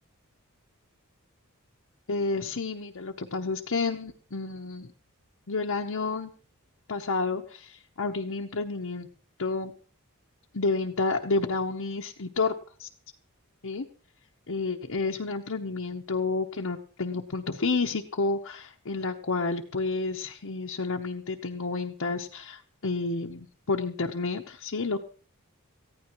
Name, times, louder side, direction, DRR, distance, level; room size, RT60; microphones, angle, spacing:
voice 1, 2.1-4.9 5.5-6.3 6.9-9.1 9.4-9.7 10.5-12.5 12.8-12.9 13.6-13.9 14.5-25.0, left 3 dB, 65° left, 0 dB, 0.9 m, -30 dB
19.5 x 15.0 x 3.0 m, 0.42 s
head